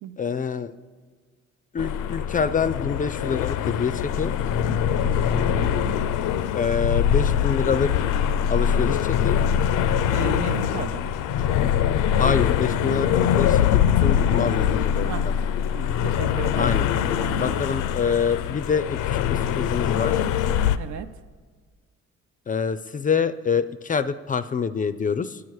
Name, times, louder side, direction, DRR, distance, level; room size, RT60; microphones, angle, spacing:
voice 1, 0.2-0.7 1.7-4.4 6.5-7.9 8.5-9.4 12.2-15.4 16.6-16.9 17.4-20.2 22.5-25.4, left 6 dB, 30° left, 13 dB, 0.3 m, -26 dB
sound 1, 1.8-20.8, left 9 dB, 85° left, 0.5 m, -23 dB
voice 2, 5.0-6.0 10.1-11.1 13.0-13.1 15.1-15.3 15.7-16.9 17.2-17.6 20.8-21.1, right 7 dB, 75° right, 10 dB, 0.7 m, -35 dB
9.5 x 8.2 x 4.7 m, 1.5 s
cardioid pair, 90°, 30 cm